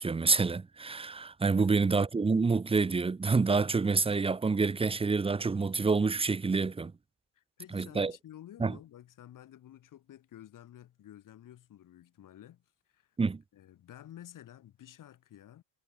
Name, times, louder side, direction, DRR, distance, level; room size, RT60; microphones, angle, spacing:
voice 1, 0.0-6.9 7.7-8.1 8.6-8.8 13.2-13.4, right 4 dB, 15° right, 1.1 m, -27 dB
voice 2, 7.3-12.6 12.9-13.2 13.5-15.6, left 11 dB, 45° left, 6.7 m, -52 dB
cardioid pair, 180°, 43 cm